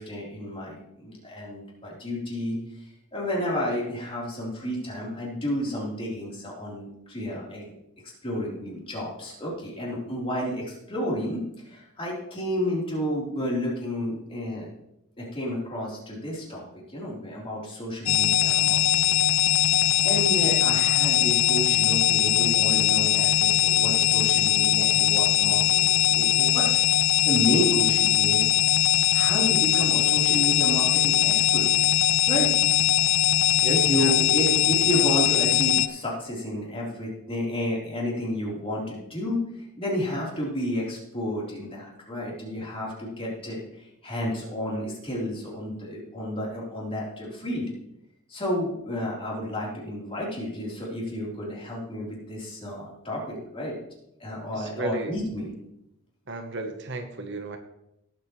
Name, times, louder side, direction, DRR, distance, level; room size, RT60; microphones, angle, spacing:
voice 1, 0.0-7.7 8.2-14.7 15.2-19.2 19.7-26.7 27.2-28.5 29.1-31.7 32.3-32.5 33.6-39.4 39.8-47.7 48.3-53.8 54.2-55.5, equal, 25° left, -5 dB, 4.0 m, -31 dB
sound 1, 18.1-35.9, left 12 dB, 70° left, 0.6 m, -21 dB
voice 2, 33.6-34.1 54.5-55.1 56.3-57.6, right 2 dB, 55° right, 5 dB, 1.2 m, -34 dB
18.0 x 8.2 x 3.3 m, 0.83 s
head